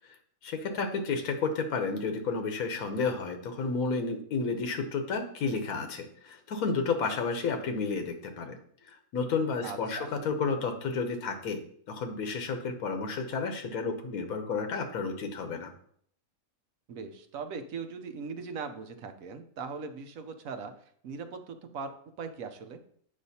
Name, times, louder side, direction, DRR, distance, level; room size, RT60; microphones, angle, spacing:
voice 1, 0.4-8.6 8.8-11.6 11.9-15.7, left 4 dB, 80° left, 6 dB, 1.3 m, -31 dB
voice 2, 9.6-10.1 16.9-20.7 21.0-21.9 22.2-22.8, right 5 dB, 70° right, 7 dB, 1.1 m, -39 dB
8.8 x 5.1 x 2.8 m, 0.62 s
omnidirectional pair, 1.5 m